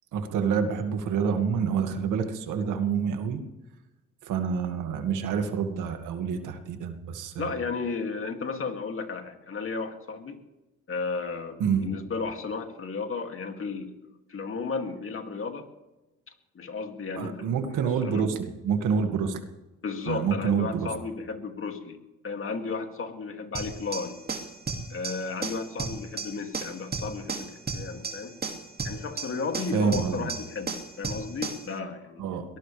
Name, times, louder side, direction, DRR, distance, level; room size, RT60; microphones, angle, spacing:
voice 1, 0.1-3.4 4.2-7.5 11.6-12.0 17.2-19.4 20.1-20.9 29.7-30.3 32.2-32.4, right 6 dB, 85° right, 5 dB, 2.1 m, -27 dB
voice 2, 7.4-10.4 10.9-13.9 14.3-15.7 16.5-18.2 19.8-22.0 22.2-24.2 24.9-28.3 28.8-32.2, left 4 dB, 45° left, 4 dB, 2.6 m, -34 dB
sound 1, 23.5-31.7, right 4 dB, 30° right, 2.4 m, -35 dB
23.0 x 18.5 x 3.4 m, 1.0 s
cardioid pair, 90°, 30 cm